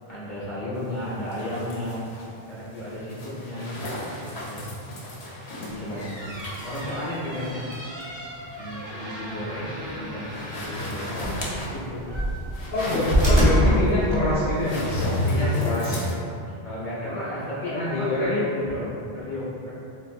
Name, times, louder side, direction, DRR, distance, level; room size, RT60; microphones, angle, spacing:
voice 1, 0.1-2.1 2.5-3.8 4.3-4.6 5.7-6.3 6.6-7.7 8.5-12.1 16.6-19.7, left 1 dB, 40° left, -9 dB, 1.2 m, -33 dB
sound 1, 0.7-16.1, left 1 dB, 90° left, 0.9 m, -34 dB
sound 2, 5.8-14.6, equal, 35° right, 0.5 m, -27 dB
voice 2, 11.0-11.3 12.7-16.0 17.7-18.3, left 1 dB, 60° left, -9 dB, 0.7 m, -26 dB
3.8 x 2.3 x 2.4 m, 2.5 s
omnidirectional pair, 1.0 m